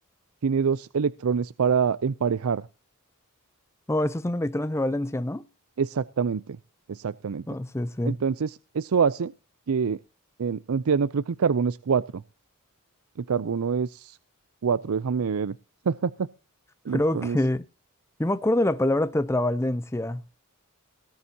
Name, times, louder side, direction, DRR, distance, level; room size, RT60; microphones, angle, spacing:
voice 1, 0.4-2.7 5.8-6.6 6.9-7.4 8.1-9.3 9.7-10.0 10.4-12.2 13.2-14.2 14.6-15.6 15.9-16.3 16.8-17.4, right 6 dB, 80° right, 0.5 m, -25 dB
voice 2, 3.9-5.5 7.5-8.1 16.9-17.6 18.2-20.2, left 1 dB, 10° left, 0.5 m, -25 dB
18.5 x 9.6 x 2.8 m
head